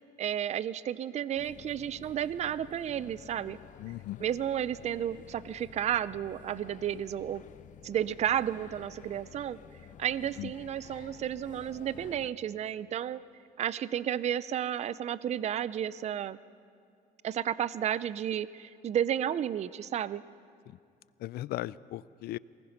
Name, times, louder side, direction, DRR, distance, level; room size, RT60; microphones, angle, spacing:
voice 1, 0.2-3.6 4.2-7.4 7.8-9.6 10.0-13.2 13.6-16.4 17.2-20.2, right 10 dB, 40° right, 18 dB, 0.5 m, -32 dB
sound 1, 1.4-12.3, left 8 dB, 50° left, 0.8 m, -52 dB
voice 2, 3.8-4.2 10.4-10.5 20.7-20.8 21.2-22.4, left 15 dB, 70° left, 21 dB, 0.4 m, -37 dB
24.0 x 20.0 x 5.8 m, 2.3 s
cardioid pair, 110°, 17 cm